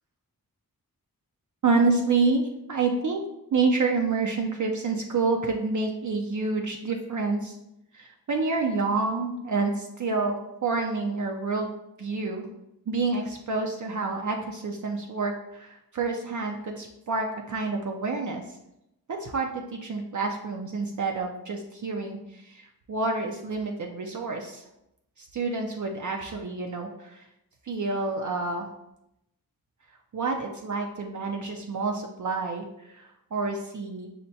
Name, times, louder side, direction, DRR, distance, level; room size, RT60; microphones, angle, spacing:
voice 1, 1.6-2.4 2.7-3.2 3.5-7.5 7.9-12.5 12.9-18.4 19.1-24.6 25.2-27.2 27.6-28.7 30.1-34.1, right 3 dB, 55° right, 2 dB, 0.5 m, -28 dB
5.7 x 2.1 x 2.6 m, 0.83 s
wide cardioid pair, 80°, 36 cm